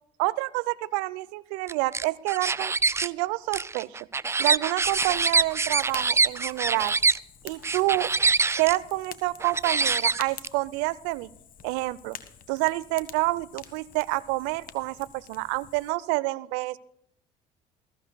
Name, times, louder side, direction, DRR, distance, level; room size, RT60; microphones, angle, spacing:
voice 1, 0.2-2.7 3.0-3.9 4.4-7.0 7.4-8.1 8.6-11.3 11.6-12.2 12.5-16.8, right 21 dB, 75° right, 18 dB, 0.6 m, -28 dB
sound 1, 1.7-3.1 3.5-7.2 7.6-8.8 9.4-10.5, right 4 dB, 15° right, 0.4 m, -24 dB
Fire, 4.8-15.9, left 8 dB, 50° left, 1.4 m, -48 dB
20.5 x 14.5 x 2.2 m, 0.73 s
hypercardioid pair, 60°, 18 cm